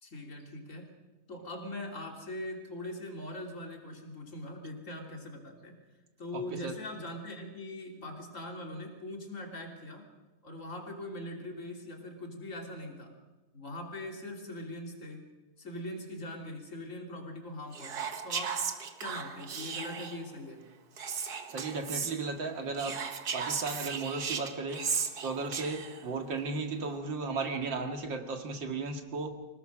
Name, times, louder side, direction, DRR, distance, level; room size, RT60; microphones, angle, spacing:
voice 1, 0.0-0.9 1.3-5.8 6.2-10.0 10.4-13.1 13.5-15.2 15.6-18.6 19.0-20.7, left 1 dB, 40° left, 2 dB, 3.4 m, -41 dB
voice 2, 6.3-6.7 21.5-23.0 23.3-24.8 25.2-29.3, right 3 dB, 80° right, 4 dB, 2.7 m, -35 dB
Whispering, 17.7-20.2 21.0-22.1 22.7-26.0, right 6 dB, 60° right, 1.9 m, -36 dB
26.5 x 18.5 x 6.2 m, 1.1 s
omnidirectional pair, 2.0 m